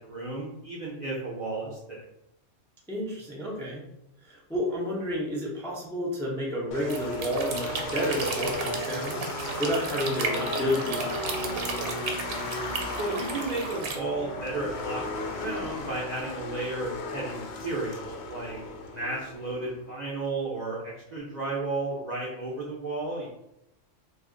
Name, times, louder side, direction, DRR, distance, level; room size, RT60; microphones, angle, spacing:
voice 1, 0.0-2.0 13.0-18.6 18.9-23.3, right 2 dB, 45° right, -5 dB, 0.6 m, -33 dB
voice 2, 2.9-3.8 4.2-11.6, equal, 5° left, -4 dB, 0.4 m, -31 dB
sound 1, 6.7-19.7, left 2 dB, 65° left, 0.8 m, -35 dB
sound 2, 6.8-14.0, right 4 dB, 70° right, 0.9 m, -34 dB
2.7 x 2.3 x 3.7 m, 0.84 s
omnidirectional pair, 1.3 m